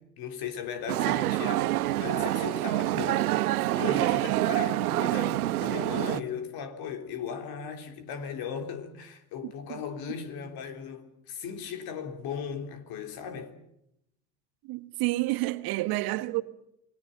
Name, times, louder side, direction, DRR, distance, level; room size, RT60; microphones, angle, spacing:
voice 1, 0.0-3.2 3.7-13.6, left 7 dB, 55° left, 3.5 m, -37 dB
sound 1, 0.9-6.2, right 16 dB, 75° right, 0.9 m, -27 dB
voice 2, 9.4-9.8 14.6-16.4, right 19 dB, 55° right, 1.4 m, -30 dB
28.0 x 19.5 x 7.2 m
hypercardioid pair, 80°, 45 cm